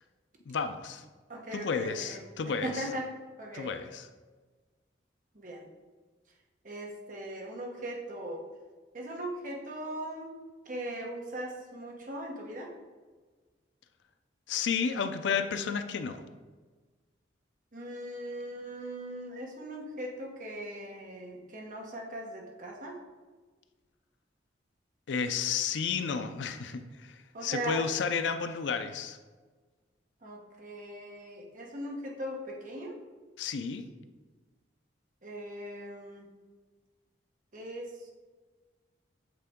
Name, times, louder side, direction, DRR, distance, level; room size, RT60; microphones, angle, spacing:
voice 1, 0.5-1.0 1.5-2.8 3.5-4.1 14.5-16.2 25.1-29.2 33.4-33.8, left 6 dB, 75° left, 9 dB, 0.4 m, -32 dB
voice 2, 1.3-3.1 3.4-3.8 5.3-5.7 6.6-8.5 8.9-10.4 10.6-12.7 17.7-23.0 27.3-27.9 30.2-33.0 35.2-36.3 37.5-38.1, right 1 dB, 45° right, 0 dB, 1.0 m, -39 dB
8.0 x 3.7 x 3.6 m, 1.4 s
head